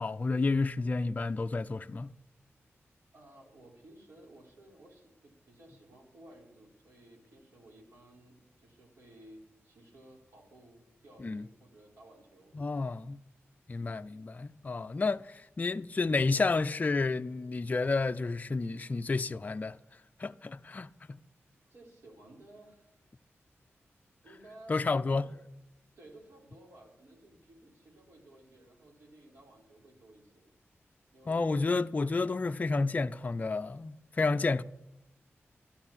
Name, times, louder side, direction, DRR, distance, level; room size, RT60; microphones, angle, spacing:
voice 1, 0.0-2.1 11.2-11.4 12.5-13.2 13.7-19.8 20.2-21.2 24.7-25.2 31.3-34.6, left 3 dB, 35° left, 0.5 m, -30 dB
voice 2, 3.1-12.6 21.6-22.9 24.2-25.3 26.0-30.5 31.1-31.6, right 1 dB, 75° right, 4.4 m, -56 dB
13.0 x 12.0 x 7.3 m
wide cardioid pair, 110°, 5 cm